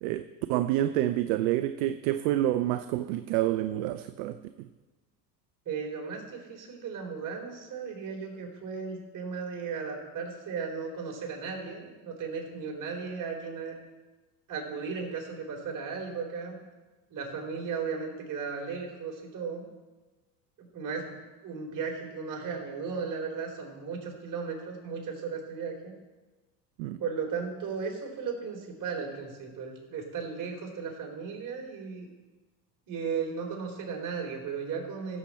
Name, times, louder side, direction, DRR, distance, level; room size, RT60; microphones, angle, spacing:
voice 1, 0.0-4.7 26.8-27.0, right 13 dB, 65° right, 0.7 m, -28 dB
voice 2, 5.7-13.8 14.5-16.6 17.1-19.7 20.6-21.1 21.4-26.0 27.0-32.1 32.9-35.2, right 5 dB, 40° right, 3.7 m, -36 dB
15.5 x 7.7 x 4.3 m
hypercardioid pair, 90°, 47 cm